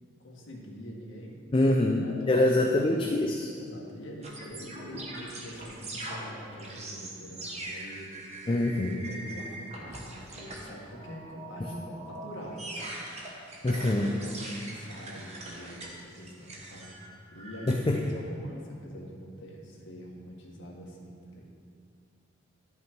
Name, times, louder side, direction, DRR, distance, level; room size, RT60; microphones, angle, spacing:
voice 1, 0.2-3.1 3.5-12.9 13.7-21.4, equal, 70° left, -2 dB, 1.5 m, -44 dB
voice 2, 1.5-3.5 8.5-8.9 11.6-11.7 13.6-14.2 17.7-18.0, left 1 dB, 25° left, 2 dB, 0.4 m, -25 dB
sound 1, 4.2-18.1, right 1 dB, 35° right, 1.1 m, -42 dB
11.0 x 5.6 x 4.5 m, 2.3 s
head